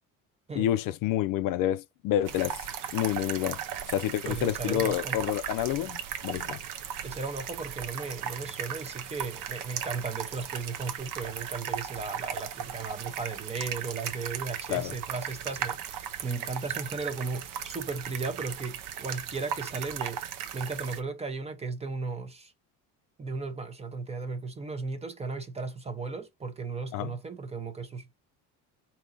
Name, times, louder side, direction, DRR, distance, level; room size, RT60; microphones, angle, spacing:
voice 1, 0.6-2.6 2.9-3.6 3.9-6.6 14.7-14.9 26.9-27.2, left 12 dB, 60° left, 0.5 m, -28 dB
sound 1, 2.3-21.0, right 9 dB, 60° right, 0.7 m, -37 dB
voice 2, 4.2-5.2 7.0-20.2 20.5-22.5 23.2-28.1, right 4 dB, 15° right, 0.6 m, -36 dB
3.7 x 2.8 x 3.8 m
cardioid pair, 130°, 37 cm